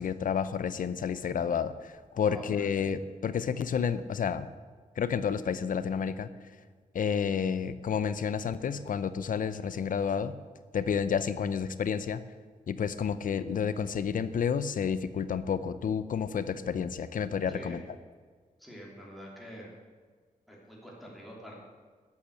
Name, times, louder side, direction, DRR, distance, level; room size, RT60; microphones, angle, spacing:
voice 1, 0.0-4.5 5.0-6.3 6.9-10.4 10.7-12.2 12.7-17.8, left 7 dB, 70° left, 13 dB, 0.7 m, -30 dB
voice 2, 2.2-2.7 17.5-17.8 18.6-19.7 20.5-21.5, equal, ahead, -4 dB, 3.2 m, -46 dB
13.5 x 8.6 x 6.5 m, 1.6 s
wide cardioid pair, 155°, 14 cm